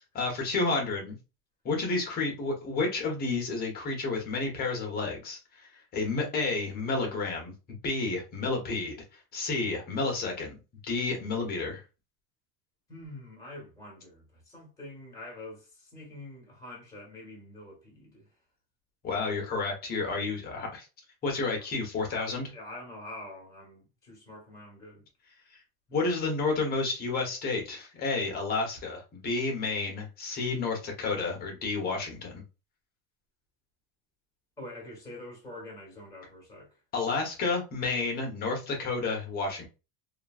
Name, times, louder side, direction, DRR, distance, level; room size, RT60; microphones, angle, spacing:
voice 1, 0.1-1.2 1.6-7.5 7.8-8.9 9.3-10.6 10.8-11.8 19.0-20.9 21.2-22.5 25.9-32.4 36.9-39.7, left 3 dB, 30° left, 0.9 m, -30 dB
voice 2, 12.9-18.3 21.6-21.7 22.2-25.0 34.6-36.8, left 1 dB, 10° left, 1.5 m, -46 dB
3.0 x 2.4 x 2.4 m
cardioid pair, 150°, 30 cm